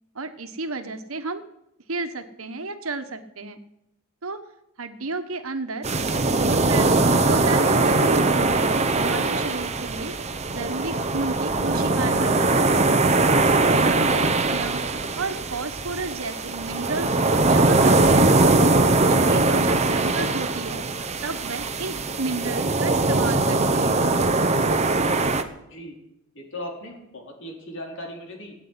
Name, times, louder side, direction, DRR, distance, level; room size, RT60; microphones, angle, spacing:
voice 1, 0.1-1.4 1.9-3.6 4.2-4.4 4.8-5.8 6.3-7.0 7.3-10.1 10.5-12.7 13.2-14.8 15.2-18.6 19.1-20.8 21.2-24.0, right 3 dB, 90° right, 8 dB, 1.4 m, -32 dB
sound 1, 5.8-25.4, right 2 dB, 35° right, 1.0 m, -21 dB
voice 2, 25.5-26.0 26.3-28.6, left 1 dB, 65° left, 1 dB, 4.2 m, -38 dB
16.5 x 8.8 x 9.7 m, 0.85 s
head